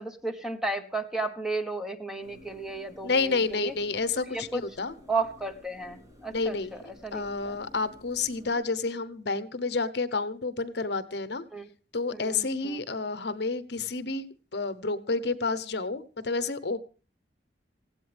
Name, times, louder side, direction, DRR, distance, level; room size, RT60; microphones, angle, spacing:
voice 1, 0.0-3.7 4.3-4.7 5.1-7.6 11.5-11.7 12.2-12.8, right 3 dB, 5° right, 7 dB, 1.3 m, -34 dB
sound 1, 2.2-8.6, left 2 dB, 20° right, 4.0 m, -53 dB
voice 2, 3.0-4.9 6.3-11.4 11.9-14.3 14.5-16.8, left 3 dB, 60° left, 13 dB, 1.0 m, -30 dB
19.5 x 16.5 x 3.5 m, 0.36 s
head